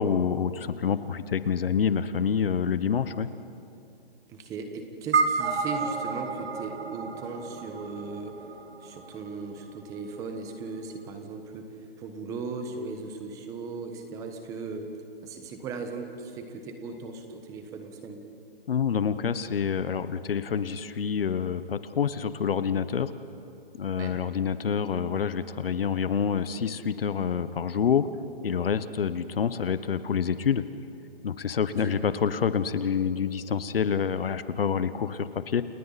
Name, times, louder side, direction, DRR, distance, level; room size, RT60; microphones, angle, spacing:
voice 1, 0.0-3.3 18.7-23.1 23.8-28.1 28.4-30.6 31.2-35.6, left 7 dB, 70° left, 13 dB, 1.1 m, -27 dB
voice 2, 4.3-8.4 8.8-11.7 12.0-14.9 15.2-18.2 24.0-24.2 31.8-32.0, right 4 dB, 10° right, 5 dB, 1.3 m, -37 dB
sound 1, 5.1-9.7, right 4 dB, 85° right, 2.2 m, -30 dB
29.5 x 29.0 x 4.2 m, 2.6 s
hypercardioid pair, 165°, 30 cm